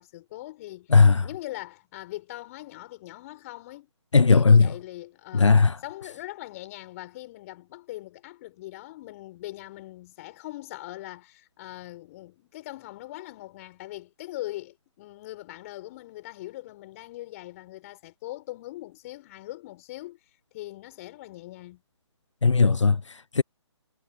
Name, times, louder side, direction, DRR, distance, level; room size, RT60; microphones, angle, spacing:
voice 1, 0.0-0.9 1.2-3.9 4.1-20.2 20.5-21.8, left 17 dB, 30° left, 5.2 m, -41 dB
voice 2, 0.9-1.3 4.1-4.7 5.3-5.8 22.4-23.4, left 4 dB, 80° left, 0.6 m, -18 dB
figure-of-eight pair, 140°, 15 cm